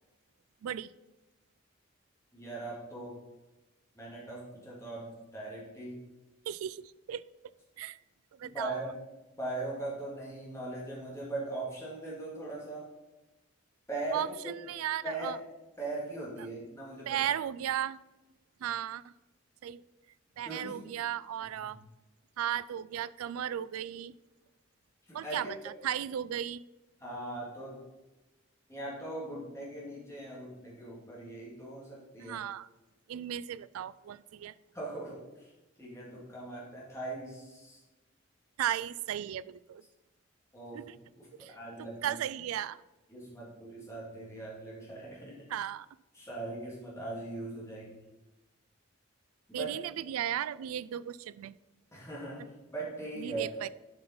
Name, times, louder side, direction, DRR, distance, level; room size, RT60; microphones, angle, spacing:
voice 1, 2.3-3.2 4.0-6.0 8.4-9.0 9.3-12.9 13.9-14.3 15.0-15.4 15.8-17.2 20.4-20.8 21.7-21.8 25.1-25.5 27.0-27.8 28.7-32.4 34.7-35.5 35.8-37.8 40.5-40.9 41.2-42.2 43.1-45.4 46.1-48.0 49.5-49.8 51.9-53.5, right 2 dB, 15° left, -6 dB, 2.2 m, -40 dB
voice 2, 6.5-8.0 8.4-8.8 14.1-14.3 14.6-15.4 16.4-16.5 17.1-18.0 18.6-19.1 19.6-19.8 20.4-21.8 22.4-24.1 25.1-25.5 25.8-26.6 32.2-32.7 33.1-34.5 38.6-39.8 40.7-41.0 41.4-42.8 45.5-45.9 49.5-51.5 53.2-53.7, right 10 dB, 90° right, 19 dB, 0.3 m, -35 dB
7.8 x 5.4 x 4.3 m, 1.1 s
head